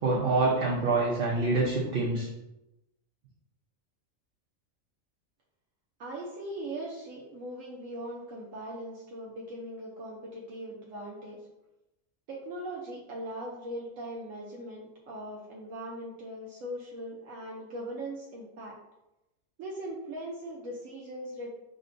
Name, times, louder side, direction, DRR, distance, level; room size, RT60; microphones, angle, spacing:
voice 1, 0.0-2.3, right 3 dB, 55° right, -4 dB, 0.7 m, -26 dB
voice 2, 6.0-11.4 12.3-18.7 19.6-21.6, right 1 dB, 70° right, -4 dB, 1.0 m, -40 dB
6.4 x 2.1 x 2.5 m, 0.93 s
omnidirectional pair, 1.4 m